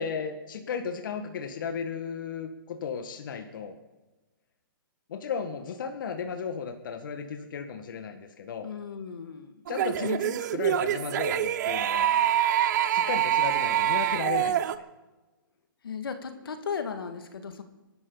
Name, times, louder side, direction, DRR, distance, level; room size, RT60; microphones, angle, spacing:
voice 1, 0.0-3.8 5.1-8.7 9.7-12.1 12.9-14.8, left 6 dB, 65° left, 6 dB, 1.8 m, -34 dB
voice 2, 8.6-9.5 15.8-17.6, left 6 dB, 80° left, 6 dB, 2.0 m, -36 dB
sound 1, 9.7-14.7, right 11 dB, 55° right, 0.8 m, -25 dB
23.0 x 12.0 x 4.0 m, 1.1 s
hypercardioid pair, 140°, 12 cm